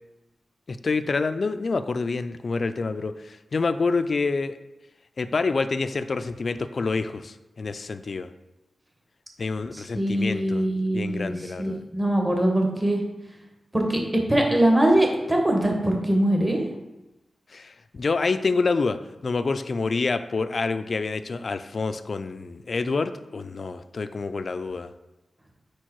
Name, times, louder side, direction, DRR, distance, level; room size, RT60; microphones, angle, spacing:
voice 1, 0.7-4.6 5.2-8.3 9.4-10.7 10.9-11.8 17.5-19.0 19.2-24.9, left 4 dB, 55° left, 11 dB, 0.3 m, -27 dB
voice 2, 9.7-13.0 13.7-14.0 14.3-16.6, right 1 dB, 15° right, 1 dB, 1.1 m, -22 dB
4.6 x 4.6 x 4.5 m, 1.0 s
wide cardioid pair, 80°, 0 cm